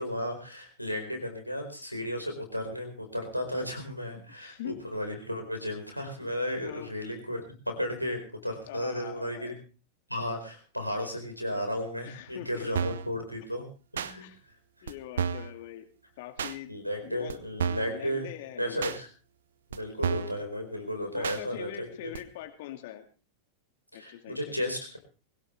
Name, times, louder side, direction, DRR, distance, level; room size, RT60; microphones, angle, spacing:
voice 1, 0.0-9.5 10.1-13.7 13.9-14.3 14.8-14.9 16.7-18.3 18.6-19.1 19.7-21.9 23.9-25.0, equal, 90° right, 5 dB, 4.8 m, -34 dB
voice 2, 4.1-4.8 6.6-6.9 8.7-9.5 12.0-12.7 14.2-14.4 14.8-15.9 16.2-16.7 17.0-17.4 17.9-18.9 21.1-23.1 23.9-24.5, left 13 dB, 50° left, 7 dB, 2.0 m, -43 dB
sound 1, 12.8-13.1 14.0-14.1 14.9-15.0 15.2-15.5 16.4-16.6 17.3-17.4 17.6-18.0 18.8-19.0 19.7-19.8 20.0-20.4 21.2-21.4 22.1-22.2, right 7 dB, 65° right, 1.0 m, -30 dB
23.5 x 16.5 x 3.3 m, 0.36 s
figure-of-eight pair, 90°, 0 cm